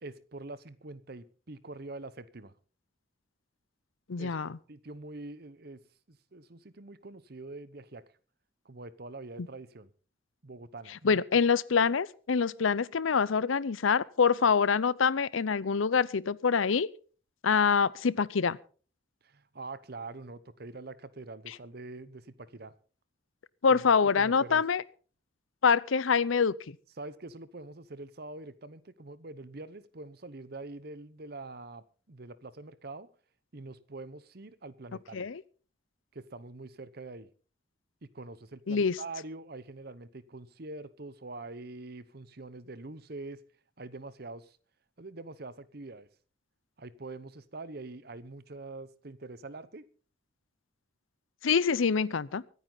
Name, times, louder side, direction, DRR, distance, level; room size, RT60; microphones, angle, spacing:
voice 1, 0.0-2.5 4.2-4.4 4.7-5.8 6.1-8.0 8.6-9.9 10.4-11.2 19.2-22.7 23.7-24.6 27.0-33.1 33.5-35.3 36.1-37.3 38.0-43.4 43.8-44.6 45.0-46.1 46.8-49.9, right 2 dB, 50° right, 16 dB, 0.9 m, -44 dB
voice 2, 4.1-4.6 11.0-16.9 17.4-18.6 23.6-24.8 25.6-26.5 35.1-35.4 38.7-39.0 51.4-52.4, left 5 dB, 85° left, 21 dB, 0.6 m, -25 dB
24.5 x 9.5 x 3.9 m, 0.40 s
head